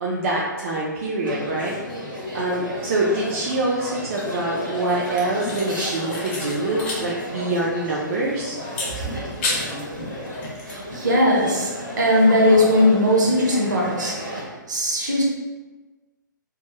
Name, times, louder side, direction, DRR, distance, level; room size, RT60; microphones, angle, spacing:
voice 1, 0.0-1.8 2.3-8.6, right 2 dB, 40° right, -5 dB, 0.4 m, -25 dB
sound 1, 1.2-14.4, equal, 90° right, 1.0 m, -33 dB
sound 2, 5.0-7.1 7.3-7.4 8.7-9.8 10.3-10.7, left 2 dB, 35° left, 0.6 m, -31 dB
voice 2, 10.6-14.2 14.7-15.2, left 1 dB, 60° right, -2 dB, 0.8 m, -19 dB
2.3 x 2.2 x 2.8 m, 1.2 s
figure-of-eight pair, 120°, 11 cm